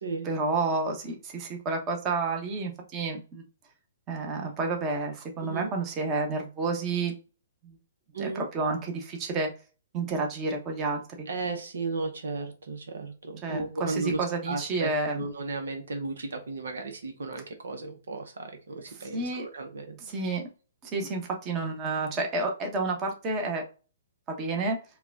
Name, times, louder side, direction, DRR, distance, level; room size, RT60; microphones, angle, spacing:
voice 1, 0.2-3.4 4.1-7.1 7.6-7.8 8.2-9.5 9.9-11.3 13.4-15.2 18.9-19.4 20.0-20.4 20.8-23.6 24.3-24.8, right 3 dB, 25° right, 2 dB, 1.0 m, -30 dB
voice 2, 8.1-8.5 11.3-20.0, right 3 dB, 75° right, 6 dB, 0.9 m, -35 dB
4.6 x 2.3 x 3.5 m, 0.34 s
hypercardioid pair, 135°, 0 cm